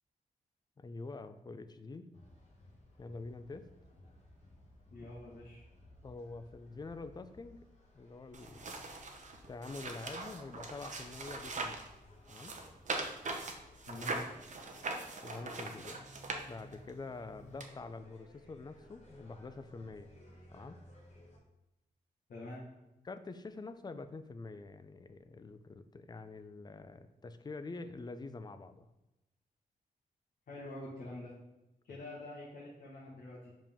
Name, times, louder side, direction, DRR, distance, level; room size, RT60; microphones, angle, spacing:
voice 1, 0.8-2.1 3.0-3.7 6.0-7.6 7.9-8.8 9.5-11.8 12.3-12.6 15.2-16.2 16.4-20.1 20.5-20.8 23.0-28.9, left 3 dB, 25° left, 11 dB, 0.4 m, -46 dB
sound 1, 2.1-21.4, left 1 dB, 45° left, 1.7 m, -59 dB
voice 2, 4.9-5.6 13.9-14.2 22.3-22.6 30.5-31.3 31.9-33.5, left 2 dB, 75° left, -6 dB, 1.4 m, -46 dB
sound 2, 8.3-11.9 12.3-16.9 17.6-17.7, right 3 dB, 55° right, 0.8 m, -41 dB
5.3 x 5.0 x 3.5 m, 0.96 s
cardioid pair, 95°, 15 cm